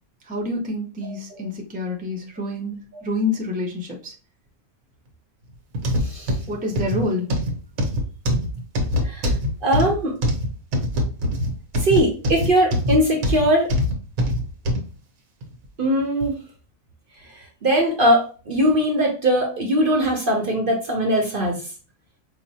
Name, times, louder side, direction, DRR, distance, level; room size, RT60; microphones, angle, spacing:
voice 1, 0.3-2.8 3.0-4.1 6.5-7.3, left 2 dB, 10° right, 0 dB, 0.4 m, -27 dB
voice 2, 1.0-1.5 2.9-3.0 6.0-6.3 9.0-9.3 9.6-10.1 11.8-13.7 15.8-16.3 17.6-21.6, equal, 50° right, 1 dB, 0.7 m, -20 dB
sound 1, 5.7-14.9 15.4-15.5 16.2-16.3, left 1 dB, 85° right, 1.2 m, -23 dB
4.9 x 2.1 x 2.7 m, 0.36 s
omnidirectional pair, 1.4 m